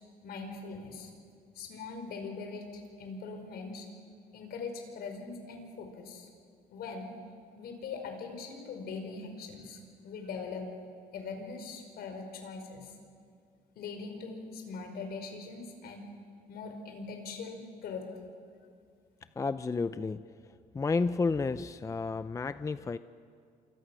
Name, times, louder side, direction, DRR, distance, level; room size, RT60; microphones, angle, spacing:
voice 1, 0.2-1.1 1.6-3.9 4.3-6.3 6.7-7.2 7.6-10.7 11.1-12.9 13.8-16.1 16.5-18.1, left 4 dB, 70° left, 4 dB, 5.3 m, -41 dB
voice 2, 19.4-23.0, left 4 dB, 20° left, 13 dB, 0.5 m, -32 dB
27.5 x 26.5 x 6.3 m, 2.3 s
cardioid pair, 110°, 17 cm